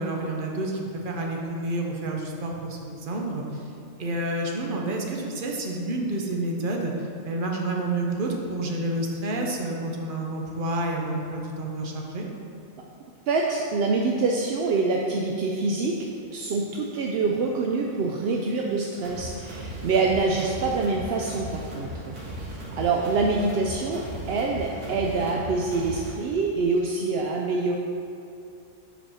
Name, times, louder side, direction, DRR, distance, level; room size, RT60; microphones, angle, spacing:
voice 1, 0.0-3.6 4.0-6.9 7.2-12.3, right 2 dB, 45° right, 0 dB, 0.9 m, -29 dB
voice 2, 13.3-15.9 16.3-22.2 22.5-27.8, right 3 dB, 65° right, 0 dB, 0.6 m, -25 dB
sound 1, 19.0-26.1, equal, 85° right, 1.7 m, -37 dB
5.4 x 5.4 x 5.6 m, 2.6 s
omnidirectional pair, 1.4 m